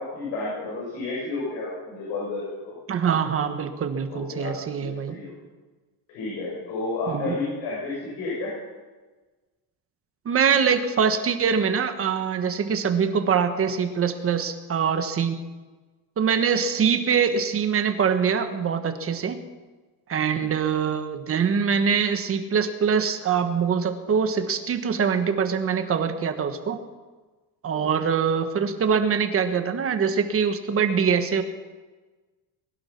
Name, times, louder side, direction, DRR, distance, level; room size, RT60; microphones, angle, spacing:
voice 1, 0.0-2.7 4.1-5.3 6.1-8.5 20.3-20.5 27.7-28.0, left 3 dB, 75° left, -6 dB, 7.4 m, -32 dB
voice 2, 2.9-5.2 7.1-7.4 10.2-15.4 16.2-19.4 20.1-26.8 27.6-31.4, right 6 dB, 30° right, 8 dB, 1.3 m, -23 dB
21.5 x 11.5 x 5.9 m, 1.3 s
cardioid pair, 160°, 47 cm